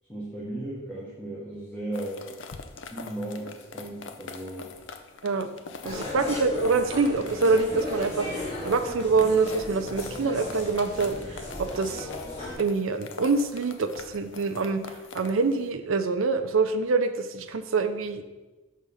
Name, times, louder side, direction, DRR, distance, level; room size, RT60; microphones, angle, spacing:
voice 1, 0.1-2.3 2.9-4.7, right 1 dB, 5° left, -7 dB, 1.0 m, -36 dB
sound 1, 1.9-15.7, left 4 dB, 65° left, 0.5 m, -44 dB
sound 2, 5.8-12.5, left 2 dB, 30° left, 2.1 m, -36 dB
voice 2, 5.8-12.1 12.6-14.9 15.1-18.2, right 4 dB, 80° right, 9 dB, 0.5 m, -25 dB
6.4 x 3.7 x 5.4 m, 1.2 s
head